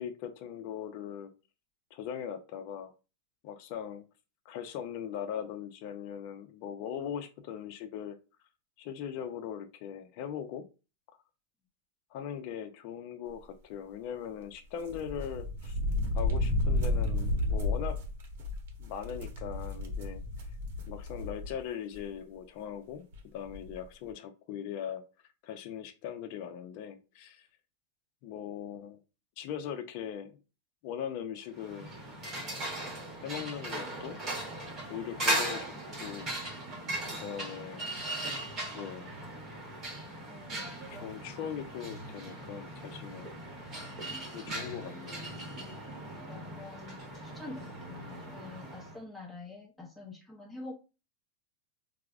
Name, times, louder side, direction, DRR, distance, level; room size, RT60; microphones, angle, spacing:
voice 1, 0.0-1.3 1.9-2.9 3.4-4.1 4.5-8.2 8.8-10.7 12.1-15.8 16.1-18.0 18.8-20.2 20.9-25.0 25.4-27.5 28.2-29.0 29.4-30.3 30.8-31.9 33.2-34.2 34.9-36.3 37.2-37.9 38.7-39.1 40.9-43.3 44.3-45.3, left 8 dB, 45° left, 7 dB, 0.4 m, -40 dB
sound 1, 14.9-21.6 21.9-22.0 23.1-23.2 23.5-23.7, left 2 dB, 70° right, 0.8 m, -32 dB
sound 2, 31.5-49.0, right 1 dB, 25° right, 0.9 m, -38 dB
voice 2, 36.7-37.0 40.3-40.7 43.1-43.2 44.0-44.3 45.5-45.7 46.3-50.7, left 3 dB, 5° left, -2 dB, 0.6 m, -47 dB
4.6 x 2.0 x 2.3 m, 0.31 s
supercardioid pair, 155°, 0 cm